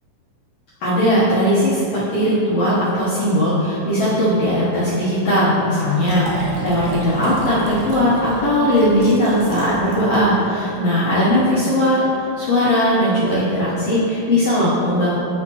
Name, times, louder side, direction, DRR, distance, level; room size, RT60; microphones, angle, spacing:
voice 1, 0.8-15.2, equal, 65° left, -10 dB, 1.6 m, -18 dB
Liquid, 6.0-10.3 10.6-10.7, right 1 dB, 70° right, 2.3 m, -31 dB
10.0 x 4.1 x 2.9 m, 2.8 s
omnidirectional pair, 4.0 m